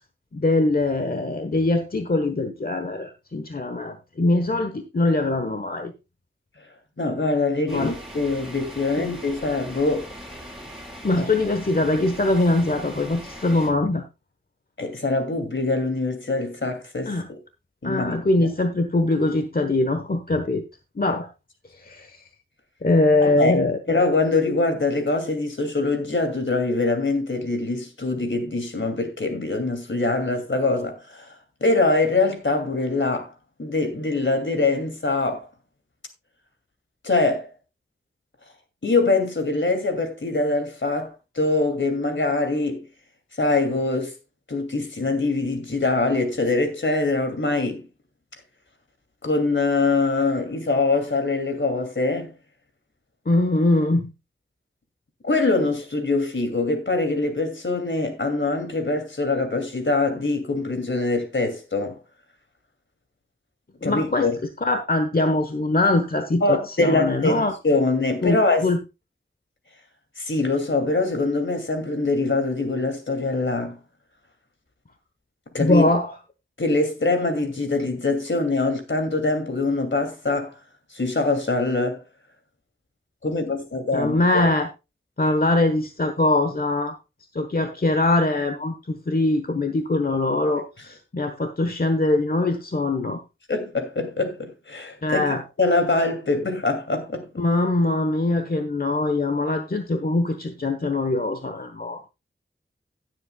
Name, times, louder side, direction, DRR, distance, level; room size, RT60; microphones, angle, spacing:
voice 1, 0.3-5.9 7.7-7.9 11.0-14.0 17.1-17.3 17.8-20.6 21.0-21.3 21.8-22.2 22.8-24.0 53.3-54.1 63.8-64.3 64.6-67.5 68.2-68.8 75.6-76.1 83.9-84.7 85.2-86.9 87.3-93.2 95.0-95.4 97.4-102.1, left 2 dB, 45° left, 1.2 m, -22 dB
voice 2, 7.0-10.1 11.2-11.3 14.8-17.1 17.8-18.2 23.2-23.5 23.9-31.3 31.6-33.3 33.6-35.5 37.0-37.5 38.8-42.9 43.4-44.1 44.5-47.8 49.2-52.3 55.2-62.0 63.8-64.4 66.4-68.7 70.2-73.8 75.5-75.8 76.6-80.5 80.9-82.0 83.2-84.5 93.5-97.3, left 3 dB, 70° left, 2.6 m, -23 dB
sound 1, 7.7-13.7, equal, ahead, 5.6 m, -40 dB
16.5 x 7.7 x 2.3 m
wide cardioid pair, 45°, 20 cm